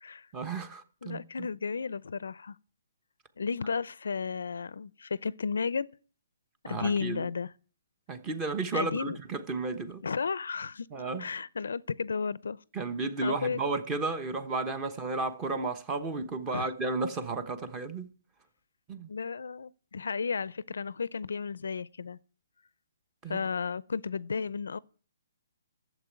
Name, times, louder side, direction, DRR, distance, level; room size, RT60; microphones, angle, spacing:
voice 1, 0.3-1.2 6.6-7.3 8.1-10.0 10.9-11.2 12.7-18.1 18.9-19.1 23.2-23.4, right 3 dB, 15° right, 1.1 m, -33 dB
voice 2, 1.0-2.6 3.4-5.9 6.6-7.5 8.7-9.2 10.0-10.9 11.2-12.6 13.2-13.6 16.5-16.7 19.1-22.2 23.3-24.8, left 5 dB, 80° left, 0.5 m, -33 dB
12.0 x 7.4 x 9.5 m
hypercardioid pair, 165°, 0 cm